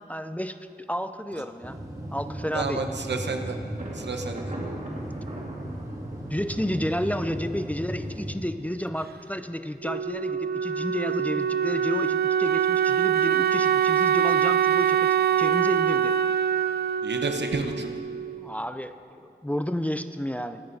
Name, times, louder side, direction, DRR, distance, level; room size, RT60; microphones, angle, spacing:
voice 1, 0.1-0.6 0.9-1.8 2.1-2.8 6.3-16.2 18.4-20.6, equal, 10° left, 9 dB, 0.4 m, -31 dB
sound 1, 1.6-8.3, right 1 dB, 20° right, 1.5 m, -36 dB
voice 2, 2.5-3.6 3.9-4.5 17.0-17.9, right 3 dB, 85° right, 4 dB, 1.0 m, -30 dB
Thunder, 3.8-9.4, right 1 dB, 45° right, 2.0 m, -42 dB
Wind instrument woodwind instrument, 9.8-18.5, right 9 dB, 65° right, 0.4 m, -24 dB
23.0 x 9.3 x 2.7 m, 2.6 s
wide cardioid pair, 65°, 18 cm